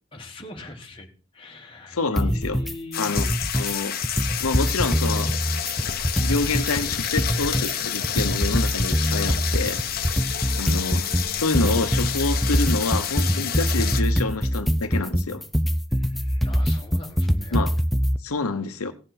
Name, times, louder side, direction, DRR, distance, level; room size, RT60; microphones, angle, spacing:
voice 1, 0.1-3.1 15.9-17.7, left 2 dB, 25° left, 0 dB, 1.7 m, -41 dB
voice 2, 1.9-2.6 3.0-3.3 3.5-4.0 4.4-5.3 6.2-9.8 10.5-11.1 11.3-15.4 17.5-17.7 18.2-18.9, left 3 dB, 85° left, 8 dB, 0.9 m, -27 dB
sound 1, 2.2-2.7 3.0-3.7 4.0-6.7 7.0-18.2, equal, ahead, 0.5 m, -24 dB
sound 2, 2.9-14.0, left 8 dB, 45° left, 1.0 m, -29 dB
17.0 x 7.8 x 4.2 m, 0.36 s
head